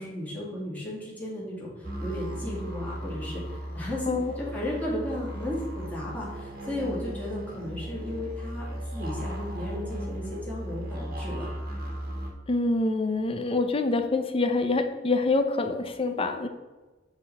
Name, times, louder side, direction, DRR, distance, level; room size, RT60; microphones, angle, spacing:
voice 1, 0.0-11.5, left 1 dB, 10° left, -6 dB, 2.1 m, -35 dB
sound 1, 1.8-12.3, equal, 55° right, 1.6 m, -36 dB
voice 2, 12.5-16.5, left 3 dB, 30° left, 7 dB, 0.6 m, -26 dB
8.1 x 3.9 x 4.1 m, 1.2 s
head